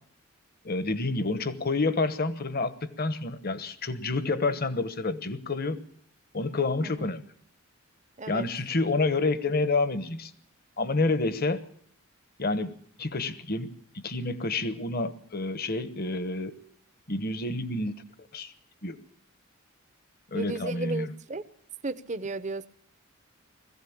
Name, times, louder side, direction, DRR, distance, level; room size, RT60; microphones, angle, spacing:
voice 1, 0.6-5.8 6.3-7.2 8.3-10.3 10.8-11.6 12.4-16.5 17.1-18.0 18.3-18.5 18.8-19.0 20.3-21.1, left 3 dB, 45° left, 13 dB, 1.1 m, -29 dB
voice 2, 20.3-21.4 21.8-22.6, right 2 dB, 35° right, 13 dB, 0.9 m, -34 dB
21.0 x 15.5 x 8.6 m, 0.63 s
head